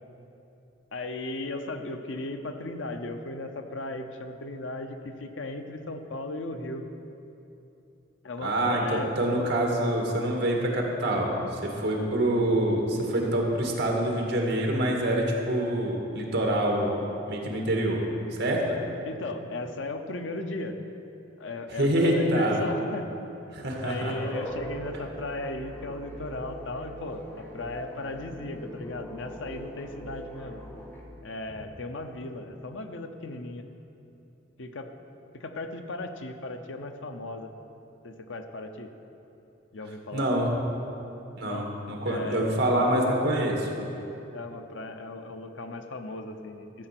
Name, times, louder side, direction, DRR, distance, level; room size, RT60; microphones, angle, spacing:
voice 1, 0.9-6.8 8.2-9.1 19.0-20.8 21.4-23.1 23.8-30.6 31.2-33.7 34.6-34.9 35.3-37.5 38.0-38.9 39.7-40.3 41.4-41.7 42.1-42.5 44.3-46.9, left 2 dB, 70° left, 7 dB, 0.8 m, -36 dB
voice 2, 8.4-16.9 17.3-18.0 18.4-18.8 21.7-22.6 23.5-24.1 40.1-40.5 41.4-43.7, right 1 dB, 60° right, 0 dB, 1.9 m, -26 dB
sound 1, 24.0-31.0, equal, 10° left, 1.4 m, -41 dB
13.0 x 7.8 x 6.0 m, 3.0 s
head